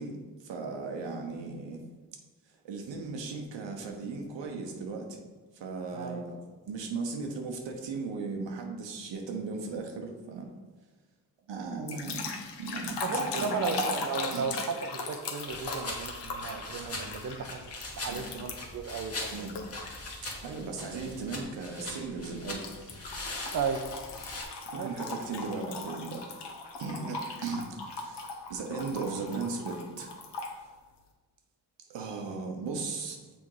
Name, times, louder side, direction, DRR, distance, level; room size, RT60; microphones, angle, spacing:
voice 1, 0.0-1.8 2.6-5.2 5.5-6.3 6.7-10.5 11.5-14.0 14.3-14.6 18.1-18.3 19.3-19.5 20.4-23.0 24.7-26.2 26.8-30.1 31.9-33.2, right 4 dB, 85° right, 3 dB, 1.0 m, -37 dB
sound 1, 11.9-18.8 19.5-20.3 20.8-21.1 22.6-30.6, left 3 dB, 70° left, 1.0 m, -38 dB
voice 2, 13.0-17.7 18.0-19.5 23.5-24.0 24.7-24.9 27.0-27.2, right 5 dB, 45° right, 6 dB, 0.6 m, -35 dB
Leaves Crunching, 15.5-24.4, left 2 dB, 35° left, 1.4 m, -41 dB
6.2 x 3.5 x 4.8 m, 1.3 s
cardioid pair, 65°, 43 cm